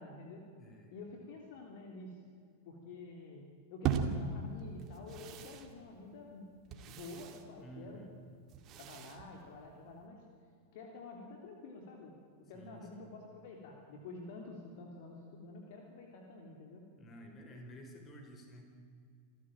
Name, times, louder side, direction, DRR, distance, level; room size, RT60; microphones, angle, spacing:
voice 1, 0.0-0.4 0.9-2.2 2.6-8.1 8.7-10.2 10.7-16.8, left 3 dB, 50° left, 2 dB, 3.3 m, -49 dB
voice 2, 0.6-1.0 7.6-8.1 12.5-13.1 17.0-18.6, right 1 dB, 25° left, 4 dB, 5.2 m, -52 dB
sound 1, 3.8-10.1, right 6 dB, 35° right, 2.2 m, -40 dB
27.0 x 14.5 x 9.0 m, 2.2 s
figure-of-eight pair, 90°, 0 cm